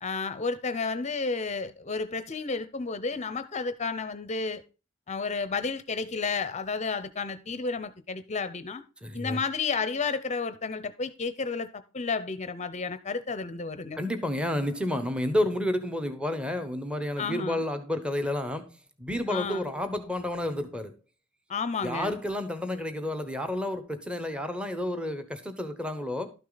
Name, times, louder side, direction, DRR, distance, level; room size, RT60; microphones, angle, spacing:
voice 1, 0.0-4.6 5.1-8.8 9.1-14.0 17.2-17.6 19.3-19.6 21.5-22.2, left 4 dB, 30° left, 0.7 m, -32 dB
voice 2, 9.0-9.4 14.0-18.7 19.0-20.9 21.8-26.3, left 1 dB, 5° right, 0.9 m, -30 dB
12.5 x 6.5 x 3.9 m
head